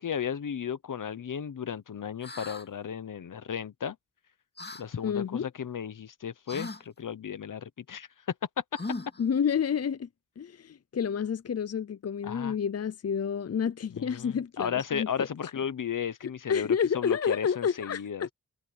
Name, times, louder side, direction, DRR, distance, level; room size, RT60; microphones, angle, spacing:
voice 1, 0.0-4.0 4.8-8.1 12.2-12.5 13.9-18.3, left 8 dB, 75° left, 1.0 m, -34 dB
sound 1, 2.2-2.7 4.6-4.8 6.5-6.8 8.7-9.2, left 3 dB, 30° left, 2.3 m, -38 dB
voice 2, 5.0-5.5 9.2-10.1 10.4-15.3 16.5-18.3, left 7 dB, 50° left, 0.6 m, -29 dB
wide cardioid pair, 65°, 32 cm